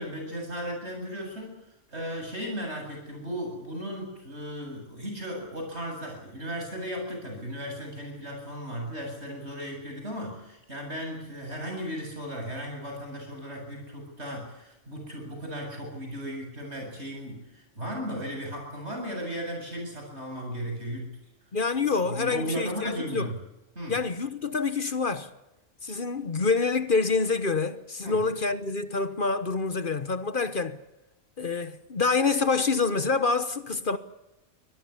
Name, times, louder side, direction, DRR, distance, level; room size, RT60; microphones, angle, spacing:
voice 1, 0.0-21.2 22.0-23.4 23.7-24.0 28.0-28.2, equal, 70° right, 8.5 m, -36 dB
voice 2, 21.5-23.3 23.9-25.3 25.8-30.8 31.4-34.0, left 4 dB, 50° left, 1.3 m, -27 dB
24.5 x 18.0 x 8.5 m
omnidirectional pair, 1.2 m